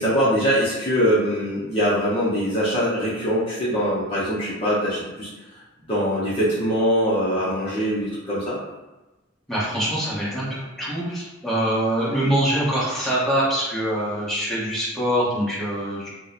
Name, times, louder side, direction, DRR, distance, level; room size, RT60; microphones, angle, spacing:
voice 1, 0.0-5.3 5.9-8.6, equal, 30° left, -9 dB, 0.7 m, -22 dB
voice 2, 9.5-16.1, right 1 dB, ahead, -9 dB, 1.0 m, -24 dB
2.9 x 2.1 x 3.9 m, 1.1 s
head